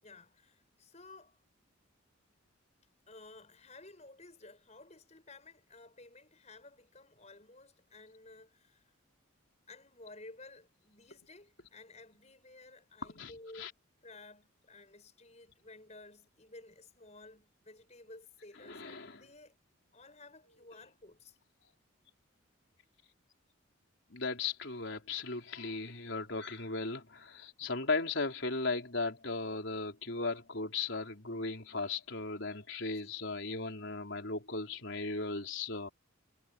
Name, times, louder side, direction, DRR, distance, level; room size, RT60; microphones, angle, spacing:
voice 1, 0.0-1.4 3.1-8.9 9.7-13.7 14.0-19.5 19.9-21.4 32.9-33.1, left 2 dB, 35° left, 6.3 m, -54 dB
voice 2, 13.0-13.3 13.6-13.7 18.7-19.2 24.1-35.9, left 3 dB, 60° left, 4.2 m, -37 dB
head